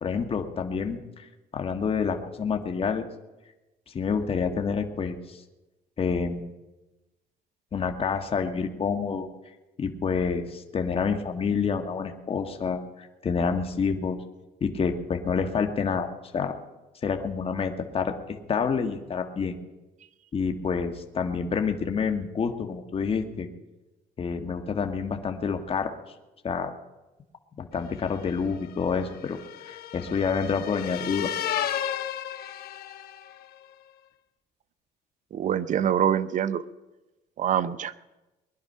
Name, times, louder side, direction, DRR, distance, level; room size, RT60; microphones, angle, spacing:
voice 1, 0.0-3.1 3.9-5.4 6.0-6.5 7.7-9.3 9.8-14.2 14.6-16.1 16.3-16.6 17.0-19.6 20.3-23.5 24.2-25.9 26.4-26.7 27.6-31.3, left 5 dB, 35° left, 6 dB, 1.5 m, -28 dB
sound 1, 28.0-33.4, left 10 dB, 65° left, 1.1 m, -34 dB
voice 2, 35.3-36.6 37.4-38.0, right 9 dB, 50° right, 14 dB, 0.8 m, -25 dB
21.0 x 11.0 x 5.5 m, 1.1 s
cardioid pair, 110°, 17 cm